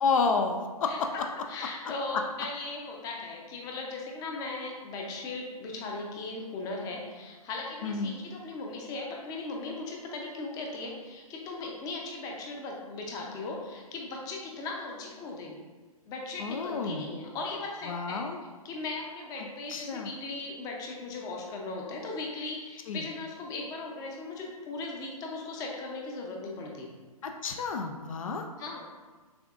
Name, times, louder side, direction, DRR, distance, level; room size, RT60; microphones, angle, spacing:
voice 1, 0.0-1.1 7.8-8.2 16.4-17.1 17.9-18.4 19.7-20.1 22.9-23.0 27.2-28.4, left 4 dB, 60° left, 5 dB, 0.4 m, -30 dB
voice 2, 0.8-15.6 16.1-18.2 18.6-26.9 28.6-28.8, left 3 dB, 20° left, 0 dB, 0.6 m, -38 dB
6.8 x 2.5 x 2.4 m, 1.4 s
hypercardioid pair, 130°, 19 cm